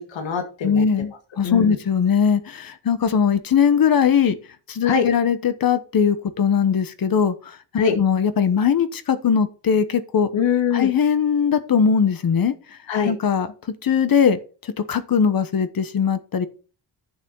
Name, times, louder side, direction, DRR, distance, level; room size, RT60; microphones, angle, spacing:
voice 1, 0.0-0.8 1.4-1.8 4.8-5.1 7.8-8.0 10.3-10.9 12.9-13.1, left 7 dB, 80° left, 6 dB, 2.1 m, -22 dB
voice 2, 0.6-4.4 4.7-7.6 7.9-10.3 10.7-12.5 13.0-13.5 13.8-14.4 14.8-16.5, left 7 dB, 50° left, 12 dB, 1.2 m, -20 dB
10.5 x 7.1 x 4.7 m, 0.36 s
wide cardioid pair, 145°, 45 cm